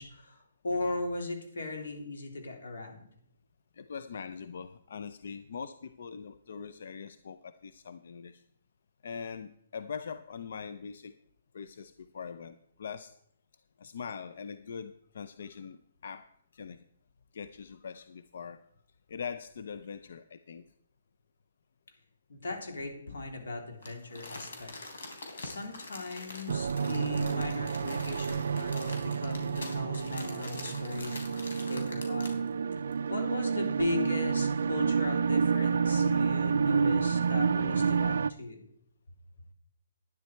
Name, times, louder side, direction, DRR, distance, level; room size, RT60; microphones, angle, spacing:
voice 1, 0.0-3.1 22.3-24.7 25.4-32.4 33.1-38.7, left 2 dB, 85° left, 3 dB, 3.4 m, -38 dB
voice 2, 3.7-8.4 9.0-11.2 11.5-13.1 13.8-16.3 16.5-16.8 17.3-18.6 19.1-20.7, left 6 dB, 50° left, 12 dB, 0.5 m, -42 dB
Crumpling crinkling, 23.8-32.5 32.9-33.0, left 2 dB, 70° left, 3.5 m, -45 dB
sound 1, 26.5-38.3, right 6 dB, 60° right, 0.3 m, -29 dB
11.0 x 10.0 x 4.5 m, 0.68 s
hypercardioid pair, 180°, 0 cm